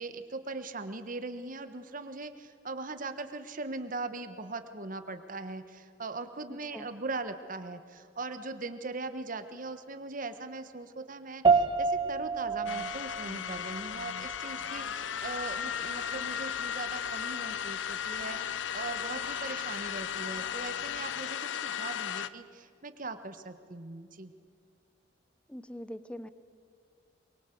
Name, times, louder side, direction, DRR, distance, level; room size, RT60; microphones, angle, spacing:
voice 1, 0.0-24.3, right 3 dB, 45° right, 10 dB, 1.3 m, -40 dB
sound 1, 11.4-21.0, right 4 dB, 25° right, 1.2 m, -33 dB
sound 2, 12.7-22.3, left 8 dB, 85° left, 0.7 m, -35 dB
voice 2, 25.5-26.3, equal, 5° left, 13 dB, 0.8 m, -42 dB
23.5 x 22.5 x 7.8 m, 2.3 s
head